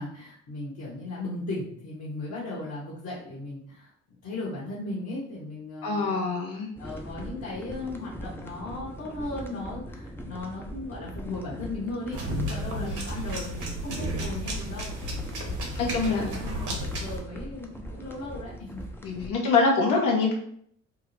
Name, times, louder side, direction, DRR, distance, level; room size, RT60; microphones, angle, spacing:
voice 1, 0.0-3.9 4.2-6.4 6.8-15.1 15.4-18.8, left 2 dB, 50° left, -7 dB, 1.2 m, -37 dB
voice 2, 5.8-6.7 12.8-13.0 15.7-16.3 19.0-20.4, left 4 dB, 65° left, -1 dB, 1.0 m, -25 dB
sound 1, 6.8-19.3, equal, 5° left, 0.5 m, -41 dB
sound 2, 12.1-17.2, right 1 dB, 55° right, 1.2 m, -33 dB
3.6 x 2.0 x 3.2 m, 0.65 s
hypercardioid pair, 60°, 35 cm